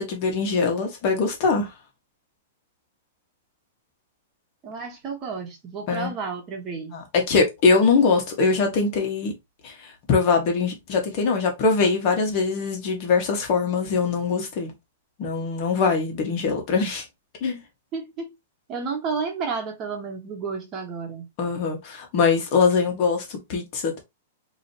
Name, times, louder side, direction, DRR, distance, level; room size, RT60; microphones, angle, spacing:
voice 1, 0.0-1.7 5.9-6.1 6.9-9.3 9.6-14.7 15.2-17.0 17.4-17.6 21.4-24.0, left 4 dB, 40° left, 1.8 m, -22 dB
voice 2, 4.6-6.9 17.9-18.3 18.7-21.3, right 5 dB, 30° right, 1.3 m, -31 dB
4.9 x 3.1 x 3.0 m
hypercardioid pair, 150°, 0 cm